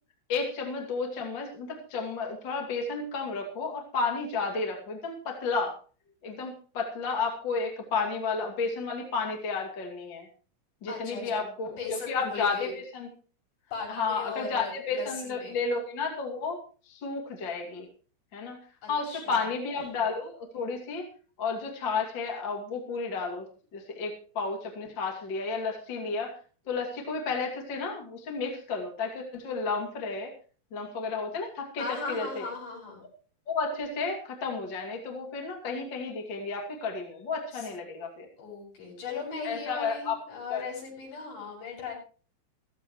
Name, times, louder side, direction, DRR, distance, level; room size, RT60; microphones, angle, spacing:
voice 1, 0.3-5.7 6.2-10.3 10.8-13.1 13.9-16.6 16.9-17.9 18.3-18.6 18.9-21.1 21.4-23.5 23.7-26.4 26.7-30.3 30.7-32.5 33.5-38.3 39.4-40.2 40.5-40.6, left 4 dB, 35° left, 2 dB, 2.0 m, -32 dB
voice 2, 10.9-12.7 13.7-15.6 18.8-19.5 31.8-33.0 37.5-37.7 38.4-41.9, left 4 dB, 60° left, -4 dB, 9.2 m, -38 dB
16.0 x 15.0 x 3.2 m, 0.39 s
omnidirectional pair, 5.9 m